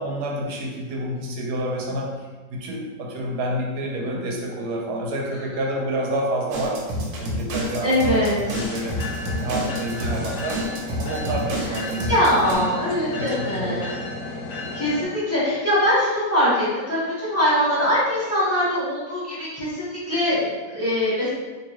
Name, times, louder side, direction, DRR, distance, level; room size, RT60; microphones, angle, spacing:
voice 1, 0.0-2.2 2.5-6.9 7.2-9.0 9.4-10.7 11.0-12.1 12.4-12.6 13.1-13.8, right 1 dB, 70° right, -1 dB, 1.1 m, -28 dB
sound 1, 6.5-12.5, equal, 90° right, 1.4 m, -29 dB
voice 2, 7.8-8.6 10.0-10.4 11.6-11.8 12.1-13.9 14.6-21.3, equal, 10° left, -10 dB, 0.9 m, -22 dB
sound 2, 8.5-15.0, left 2 dB, 70° left, 0.7 m, -33 dB
3.8 x 2.6 x 3.0 m, 1.3 s
omnidirectional pair, 2.0 m